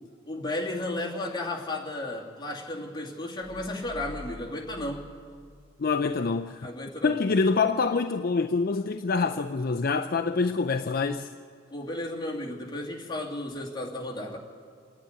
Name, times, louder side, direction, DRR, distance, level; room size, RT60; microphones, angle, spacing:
voice 1, 0.2-5.1 6.6-7.1 11.7-14.4, left 1 dB, 20° left, 2.5 m, -34 dB
sound 1, 3.4-6.4, left 1 dB, 10° right, 1.2 m, -47 dB
voice 2, 5.8-6.7 7.0-11.3, left 4 dB, 45° left, 0.5 m, -26 dB
26.5 x 10.5 x 9.5 m
head